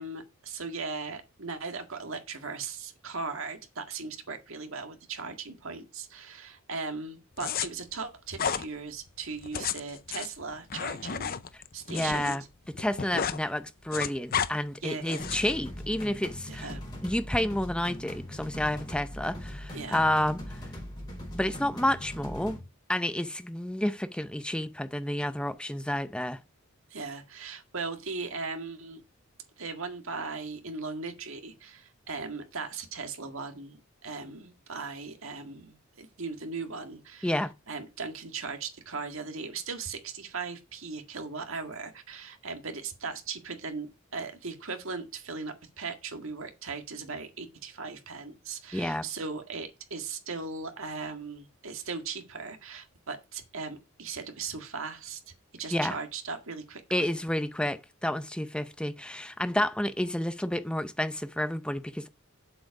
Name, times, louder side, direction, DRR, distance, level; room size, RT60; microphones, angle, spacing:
voice 1, 0.0-11.4 11.7-12.4 14.8-15.2 16.5-16.8 19.7-20.0 26.9-29.0 29.6-57.1, right 4 dB, 65° right, 1.9 m, -38 dB
sound 1, 7.4-7.7 8.3-8.6 9.4-12.4 12.7-13.4 13.7-14.5 15.1-15.5, left 7 dB, 45° left, 0.6 m, -32 dB
voice 2, 11.9-12.4 12.8-16.7 17.0-20.6 21.3-22.6 22.9-26.4 37.2-37.5 48.7-49.0 55.7-56.0 56.9-62.1, left 1 dB, 5° left, 0.6 m, -30 dB
sound 2, 15.2-22.6, equal, 20° left, 5.5 m, -40 dB
7.7 x 7.7 x 4.8 m
head